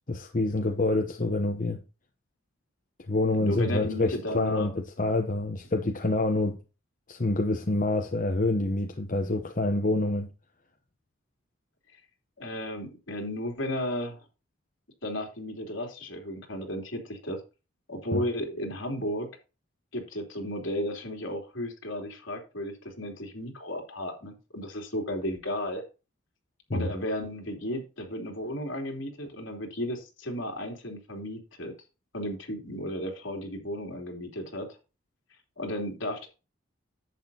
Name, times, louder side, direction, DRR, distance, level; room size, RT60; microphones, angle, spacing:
voice 1, 0.1-1.8 3.1-6.6 7.1-10.3 18.1-18.2 26.7-26.9, left 2 dB, 40° left, 0.9 m, -27 dB
voice 2, 3.3-4.7 12.4-14.2 15.0-17.4 17.9-19.3 19.9-25.8 26.7-31.7 32.1-34.7 35.6-36.3, left 1 dB, 70° left, 3.2 m, -34 dB
10.5 x 8.2 x 2.8 m
head